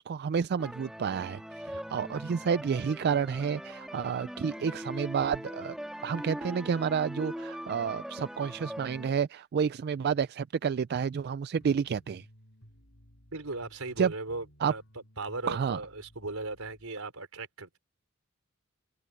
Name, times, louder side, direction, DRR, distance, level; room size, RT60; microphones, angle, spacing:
voice 1, 0.0-5.8 6.0-12.3 14.0-14.1 14.6-14.7 15.5-15.8, right 6 dB, 50° right, 0.3 m, -30 dB
sound 1, 0.6-9.1, equal, ahead, 1.9 m, -41 dB
sound 2, 11.6-16.9, equal, 65° left, 4.1 m, -58 dB
voice 2, 13.3-14.8 15.2-17.8, right 3 dB, 80° right, 4.3 m, -37 dB
head